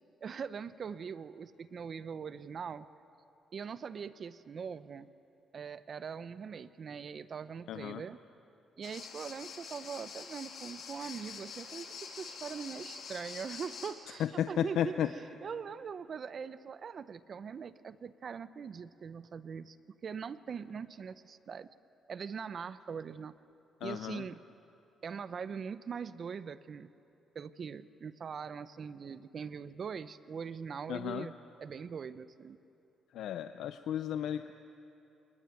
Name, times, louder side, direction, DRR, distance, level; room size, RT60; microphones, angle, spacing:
voice 1, 0.2-2.9 3.5-5.1 5.5-8.2 8.8-14.9 15.4-19.8 20.0-21.7 22.1-23.3 23.8-24.4 25.0-26.9 27.3-31.3 31.6-32.6, right 6 dB, 50° right, 14 dB, 0.7 m, -42 dB
voice 2, 7.7-8.0 14.2-15.1 23.8-24.2 30.9-31.3 33.1-34.5, left 10 dB, 80° left, 10 dB, 0.6 m, -34 dB
sound 1, 8.8-13.9, left 6 dB, 60° left, 3.2 m, -46 dB
28.0 x 19.5 x 9.1 m, 2.8 s
cardioid pair, 90°, 0 cm